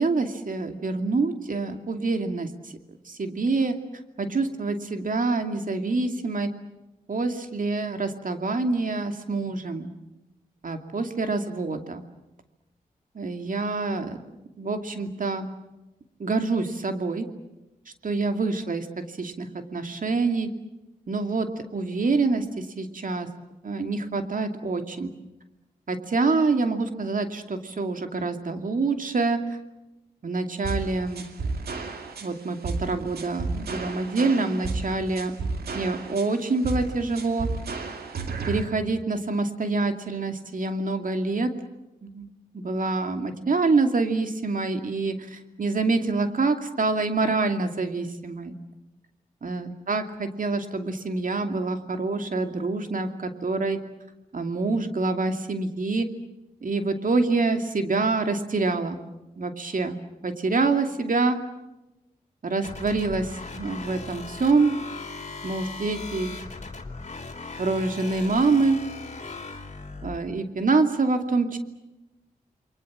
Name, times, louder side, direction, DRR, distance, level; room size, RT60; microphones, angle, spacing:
voice 1, 0.0-2.7 3.1-3.8 4.2-6.5 7.1-9.9 10.6-12.0 13.1-14.2 14.6-15.5 16.2-17.3 18.0-20.5 21.1-23.3 23.6-25.1 25.9-29.4 30.2-31.2 32.2-35.3 35.7-37.5 38.5-41.5 42.0-42.3 42.5-48.5 49.4-53.8 54.3-56.1 56.6-59.0 59.4-60.0 60.2-61.4 62.4-64.8 65.4-66.3 67.6-68.8 70.0-71.6, right 3 dB, 60° right, 7 dB, 2.6 m, -26 dB
sound 1, 30.6-38.6, right 3 dB, 85° right, 2.5 m, -32 dB
sound 2, 62.6-70.2, left 3 dB, 45° left, 3.6 m, -38 dB
29.0 x 23.0 x 7.5 m, 0.97 s
cardioid pair, 45°, 16 cm